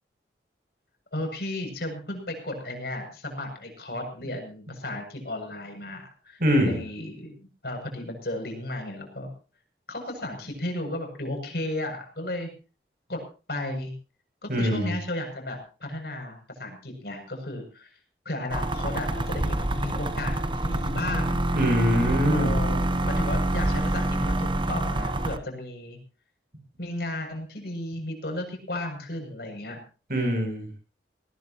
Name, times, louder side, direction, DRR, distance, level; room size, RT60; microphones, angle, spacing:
voice 1, 1.1-9.3 9.9-12.5 13.1-13.2 13.5-13.9 14.4-17.9 18.2-21.4 22.3-26.0 26.8-29.8, left 1 dB, 60° left, 4 dB, 7.5 m, -34 dB
voice 2, 6.4-6.8 14.5-14.9 21.5-22.5 30.1-30.7, equal, 50° right, 4 dB, 7.7 m, -23 dB
sound 1, 18.5-25.4, right 1 dB, 25° right, 1.0 m, -26 dB
20.5 x 19.0 x 3.0 m, 0.36 s
head